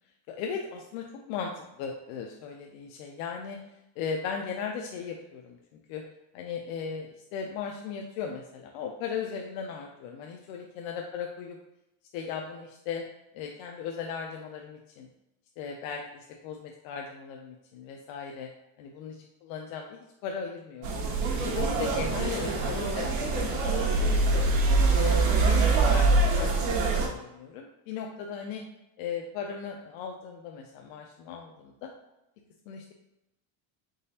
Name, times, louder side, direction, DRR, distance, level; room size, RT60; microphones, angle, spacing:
voice 1, 0.3-3.6 4.0-5.6 5.9-6.0 6.3-11.6 12.1-13.0 13.3-15.1 15.6-18.5 18.8-19.2 19.4-20.9 21.4-24.2 24.9-28.6 29.0-31.9 32.7-32.9, left 6 dB, 85° left, 2 dB, 0.6 m, -37 dB
sound 1, 20.8-27.1, right 3 dB, 70° right, 1.0 m, -24 dB
4.0 x 3.8 x 2.7 m, 0.89 s
cardioid pair, 135°, 46 cm